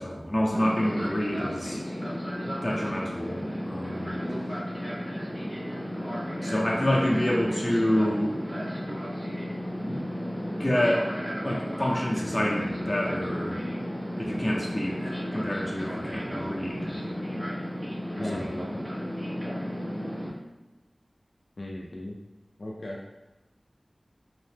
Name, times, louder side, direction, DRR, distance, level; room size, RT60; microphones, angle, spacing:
voice 1, 0.0-1.8 2.4-4.2 6.4-8.4 9.9-10.0 10.6-11.1 11.4-13.6 14.2-17.0 18.3-18.5, left 1 dB, 25° left, -3 dB, 0.6 m, -28 dB
Fixed-wing aircraft airplane, 0.5-20.3, equal, 15° right, 0.5 m, -33 dB
voice 2, 18.2-18.8 21.6-22.2 22.6-23.0, left 1 dB, 70° left, -3 dB, 0.4 m, -36 dB
2.8 x 2.1 x 3.2 m, 1.1 s
wide cardioid pair, 60°, 0 cm